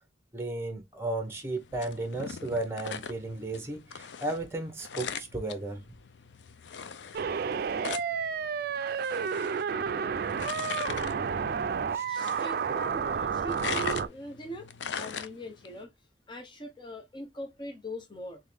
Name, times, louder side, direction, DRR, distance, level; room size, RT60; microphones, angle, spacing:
voice 1, 0.3-5.8 11.9-12.0, right 2 dB, 15° right, 1.2 m, -34 dB
sound 1, 1.3-15.8, left 6 dB, 85° left, 0.5 m, -41 dB
sound 2, 7.1-14.1, right 6 dB, 55° right, 0.4 m, -31 dB
voice 2, 12.1-14.7 14.9-15.9 16.3-18.4, equal, 25° left, 1.0 m, -41 dB
3.8 x 3.5 x 3.3 m
head